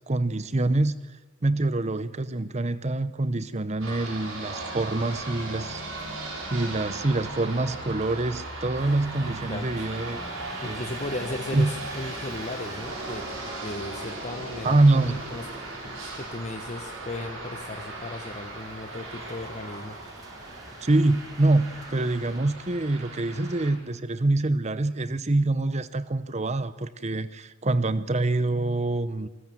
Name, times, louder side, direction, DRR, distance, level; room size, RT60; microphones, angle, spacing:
voice 1, 0.1-0.9 1.4-5.8 6.5-10.2 10.7-10.8 11.5-11.7 14.6-15.2 20.8-29.3, right 2 dB, 35° right, 14 dB, 0.8 m, -25 dB
sound 1, 3.8-23.7, right 2 dB, 80° right, 6.8 m, -38 dB
sound 2, 8.7-22.4, right 1 dB, 20° right, 1.6 m, -47 dB
voice 2, 9.2-9.9 10.6-15.5 15.8-20.0, left 2 dB, 35° left, 5 dB, 1.1 m, -36 dB
27.5 x 19.0 x 7.8 m, 1.2 s
head